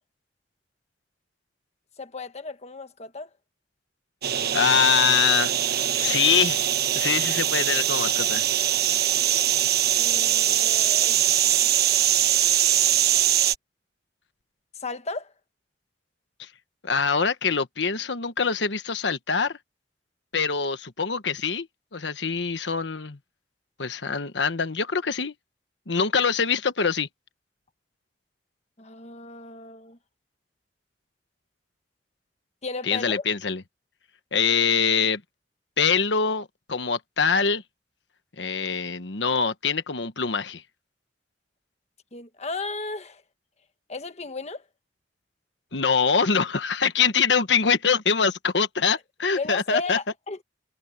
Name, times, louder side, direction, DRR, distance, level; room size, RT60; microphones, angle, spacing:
voice 1, 2.0-3.3 10.0-11.2 14.8-15.3 28.8-30.0 32.6-33.2 42.1-43.2 43.9-44.6 49.3-50.4, left 3 dB, 40° left, 1.4 m, -34 dB
sound 1, 4.2-13.5, right 11 dB, 60° right, 1.2 m, -22 dB
voice 2, 4.5-6.7 6.9-8.4 16.4-16.5 16.8-19.6 20.3-21.7 21.9-23.2 23.8-25.3 25.9-27.1 32.8-33.6 34.3-35.2 35.8-37.6 38.4-40.6 45.7-50.0, left 6 dB, 90° left, 1.2 m, -24 dB
head